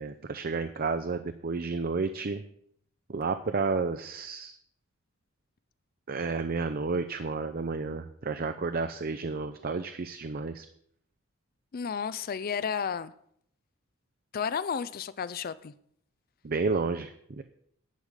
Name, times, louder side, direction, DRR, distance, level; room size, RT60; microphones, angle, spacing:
voice 1, 0.0-2.4 3.1-4.6 6.1-10.7 16.4-17.4, right 4 dB, 45° right, 0.5 m, -31 dB
voice 2, 11.7-13.1 14.3-15.7, left 6 dB, 45° left, 0.4 m, -32 dB
10.5 x 5.0 x 8.1 m
head